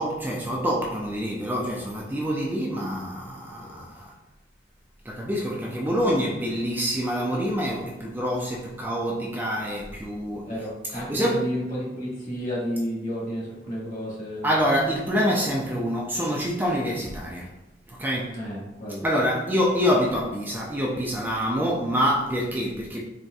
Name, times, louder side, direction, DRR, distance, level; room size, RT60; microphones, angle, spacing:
voice 1, 0.0-4.1 5.1-10.5 11.1-11.4 14.4-17.5 17.9-18.4 19.0-23.0, equal, 10° right, 0.3 m, -26 dB
voice 2, 10.4-14.5 18.3-19.0, equal, 45° left, 1.2 m, -31 dB
4.0 x 2.5 x 2.3 m
head